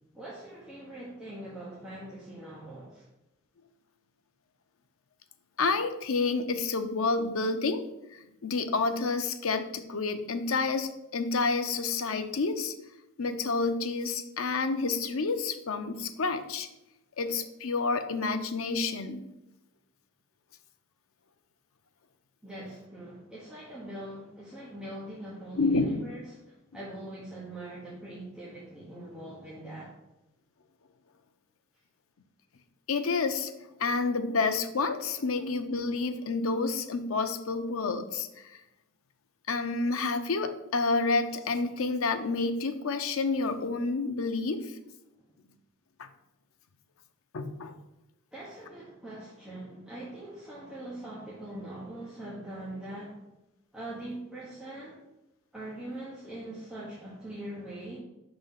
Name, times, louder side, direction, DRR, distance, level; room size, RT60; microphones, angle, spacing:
voice 1, 0.1-3.1 22.4-29.9 48.3-53.2 53.7-55.0 55.5-58.0, right 1 dB, 5° right, -8 dB, 1.1 m, -42 dB
voice 2, 5.6-7.8 8.1-12.7 13.2-16.7 17.2-19.2 25.6-25.9 32.9-33.5 33.8-38.5 39.5-44.7 46.0-46.1 47.3-47.8, left 3 dB, 75° left, 8 dB, 0.6 m, -29 dB
5.7 x 3.9 x 5.7 m, 0.93 s
head